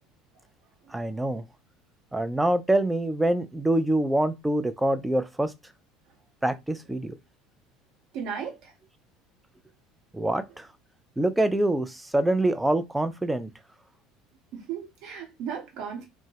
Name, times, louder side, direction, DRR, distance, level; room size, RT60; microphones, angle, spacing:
voice 1, 0.9-1.5 2.1-5.5 6.4-7.1 10.1-10.7 11.2-13.5, right 1 dB, 10° right, 0.3 m, -25 dB
voice 2, 8.1-8.7 14.5-16.0, right 7 dB, 55° right, 0.9 m, -35 dB
2.1 x 2.1 x 3.2 m
figure-of-eight pair, 65°, 0 cm